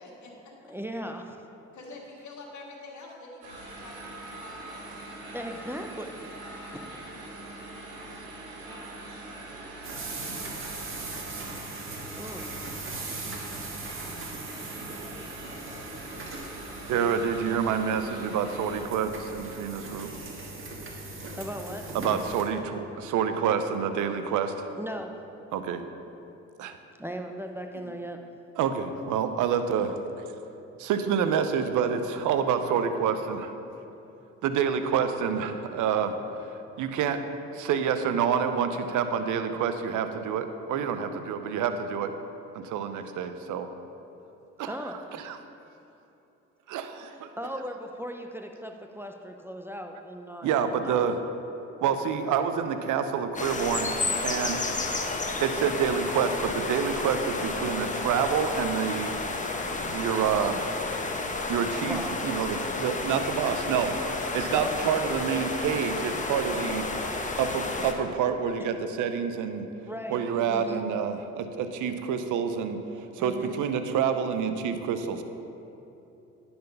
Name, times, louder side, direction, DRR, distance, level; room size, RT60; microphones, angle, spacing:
voice 1, 0.0-0.7 1.7-5.3 6.8-7.0, left 2 dB, 55° left, -1 dB, 1.8 m, -47 dB
voice 2, 0.6-1.5 5.3-6.2 6.7-7.1 7.5-7.7 12.2-12.6 21.4-22.3 24.8-25.1 27.0-28.2 44.7-45.2 47.4-51.3 51.9-52.2 61.8-62.1 64.2-64.3 64.6-65.5 68.6-68.7 69.9-70.2 70.5-70.9 73.2-73.6, equal, 5° right, 4 dB, 0.6 m, -38 dB
sound 1, 3.4-18.8, right 2 dB, 85° right, 1.9 m, -42 dB
sound 2, 9.8-22.4, right 3 dB, 40° right, 1.5 m, -40 dB
voice 3, 16.9-20.1 21.9-24.7 25.5-25.8 26.6-26.8 28.6-30.0 30.8-33.5 34.4-36.1 36.8-37.2 37.5-42.1 42.5-43.7 44.6-44.7 45.2-45.4 46.7-47.1 50.4-51.2 51.8-53.9 54.2-54.6 55.4-59.2 59.9-60.7 61.5-62.0 62.2-66.9 67.4-69.7 70.1-72.8 73.2-75.2, right 7 dB, 60° right, 9 dB, 0.7 m, -27 dB
sound 3, 53.3-67.9, left 3 dB, 20° left, 0.9 m, -31 dB
10.5 x 4.4 x 5.4 m, 2.9 s
hypercardioid pair, 55°, 34 cm